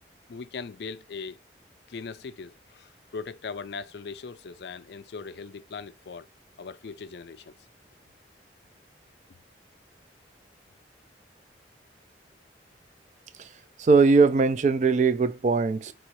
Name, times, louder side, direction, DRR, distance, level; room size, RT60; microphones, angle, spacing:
voice 1, 0.3-1.4 1.9-6.3 6.6-7.6, left 5 dB, 65° left, 0.4 m, -39 dB
voice 2, 13.8-15.9, right 4 dB, 40° right, 0.3 m, -20 dB
4.7 x 3.0 x 2.9 m
head